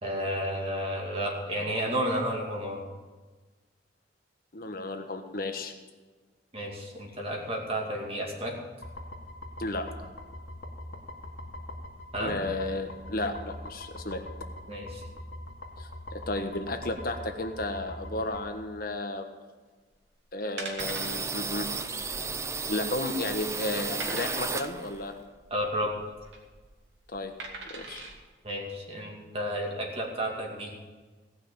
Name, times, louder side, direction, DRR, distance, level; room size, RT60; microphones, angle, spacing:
voice 1, 0.0-2.8 6.5-8.5 12.1-12.4 14.7-15.0 25.5-25.9 28.4-30.7, equal, 30° right, -1 dB, 2.5 m, -32 dB
voice 2, 4.5-5.7 9.6-9.9 12.2-14.2 15.8-19.3 20.3-21.7 22.7-25.1 27.1-27.3 27.7-28.0, left 2 dB, 50° left, 5 dB, 1.4 m, -33 dB
sound 1, 8.8-18.5, left 1 dB, 85° left, 2.1 m, -42 dB
sound 2, 19.9-20.1 20.6-21.3 21.6-21.8 22.1-22.2 22.7-23.2 24.0-24.7 26.0-26.4 27.4-28.1 28.7-28.8, right 3 dB, 85° right, 2.5 m, -41 dB
sound 3, 20.8-25.1 25.5-26.9 27.1-27.2 27.5-28.2, right 4 dB, 15° right, 0.5 m, -34 dB
17.5 x 6.0 x 8.7 m, 1.3 s
head